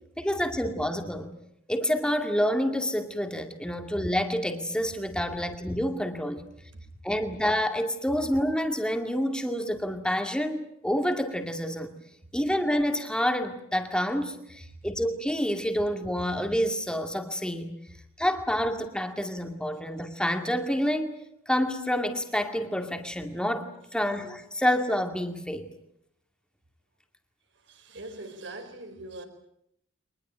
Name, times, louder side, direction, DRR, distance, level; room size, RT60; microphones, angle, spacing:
voice 1, 0.2-1.3 1.7-6.4 7.0-11.9 12.3-17.7 18.2-21.1 21.5-25.7, equal, 5° left, 6 dB, 2.2 m, -28 dB
voice 2, 27.7-29.2, right 2 dB, 60° right, 7 dB, 4.5 m, -42 dB
24.0 x 20.5 x 9.0 m, 0.74 s
head